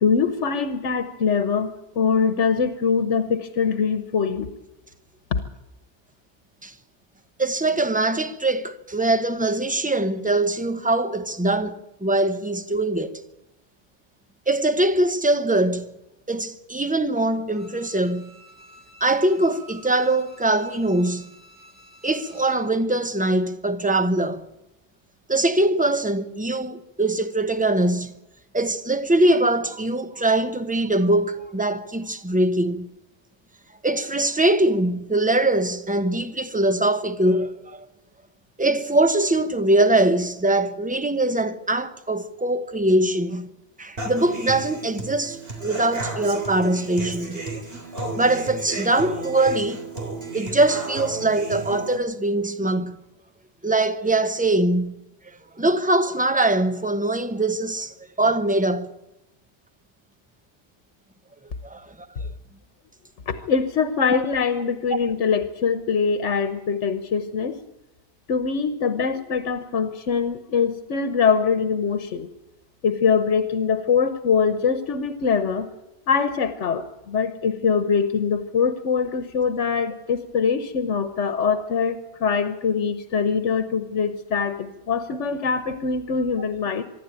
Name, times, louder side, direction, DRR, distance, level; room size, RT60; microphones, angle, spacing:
voice 1, 0.0-4.5 5.3-5.4 63.3-67.6 68.3-72.3 72.8-75.7 76.1-86.8, left 6 dB, 90° left, 1.4 m, -23 dB
voice 2, 7.4-13.2 14.5-15.9 16.3-18.3 19.0-21.3 22.0-24.4 25.3-28.1 28.5-32.9 33.8-37.9 38.6-43.5 43.8-47.5 48.1-49.8 50.3-53.0 53.6-55.0 55.6-58.9 61.6-62.1, right 2 dB, 10° right, 0.9 m, -22 dB
Bowed string instrument, 17.5-22.7 23.1-23.2, equal, 10° left, 4.2 m, -50 dB
Human voice / Acoustic guitar, 44.0-52.0, right 2 dB, 55° right, 3.6 m, -33 dB
25.0 x 11.5 x 9.0 m
omnidirectional pair, 1.2 m